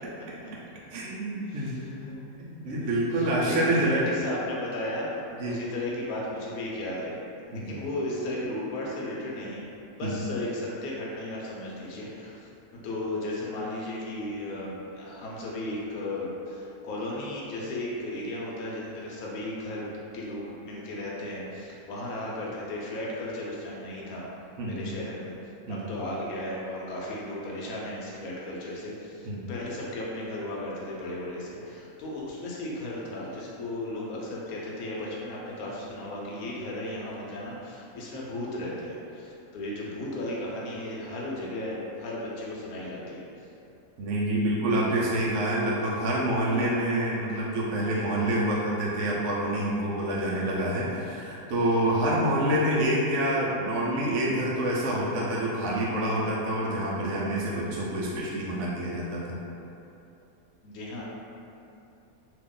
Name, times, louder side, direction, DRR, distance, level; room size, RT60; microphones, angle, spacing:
voice 1, 0.9-4.0 5.4-5.6 7.5-7.8 10.0-10.3 24.6-24.9 25.7-25.9 29.3-29.5 44.0-59.4, right 1 dB, 65° right, -5 dB, 0.8 m, -27 dB
voice 2, 1.5-2.1 2.6-7.2 7.5-9.6 9.9-12.5 12.8-24.3 24.6-25.3 25.7-43.3 44.7-45.0 60.6-61.0, left 1 dB, 75° left, -5 dB, 1.1 m, -35 dB
2.8 x 2.4 x 3.7 m, 2.8 s
omnidirectional pair, 1.6 m